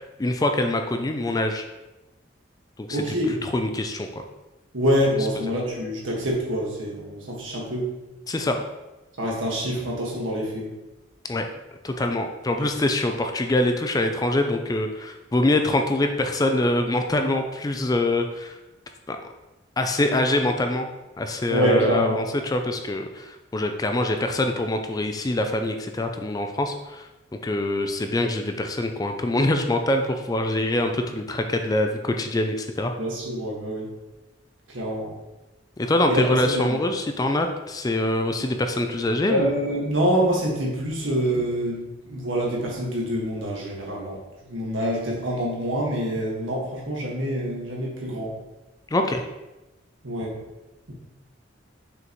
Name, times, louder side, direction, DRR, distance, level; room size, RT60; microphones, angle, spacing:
voice 1, 0.2-1.6 2.8-4.2 8.3-8.7 11.3-11.5 11.8-18.6 19.1-19.2 19.8-20.9 21.2-27.1 27.4-32.9 35.8-39.5 48.9-49.2, left 1 dB, 20° left, 5 dB, 0.4 m, -24 dB
voice 2, 2.9-3.4 4.7-7.9 9.2-10.7 12.6-12.7 21.5-22.2 33.0-33.9 34.7-35.1 36.1-36.8 39.3-48.3 50.0-50.4, equal, 90° right, -3 dB, 1.7 m, -26 dB
6.3 x 4.9 x 3.0 m, 1.0 s
head